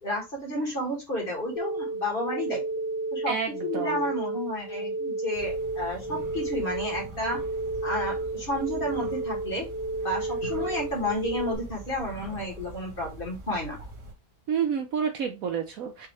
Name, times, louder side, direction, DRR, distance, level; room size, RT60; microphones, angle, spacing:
voice 1, 0.0-2.6 3.1-3.3 3.6-7.4 7.8-9.7 10.0-13.8, left 1 dB, 35° left, -1 dB, 1.9 m, -31 dB
sound 1, 1.6-11.6, right 2 dB, 70° left, 0.3 m, -32 dB
voice 2, 3.3-4.0 14.5-16.1, right 7 dB, 65° right, 6 dB, 1.0 m, -29 dB
sound 2, 5.3-14.1, right 2 dB, 80° right, 2.2 m, -44 dB
5.4 x 3.0 x 3.3 m, 0.25 s
omnidirectional pair, 1.8 m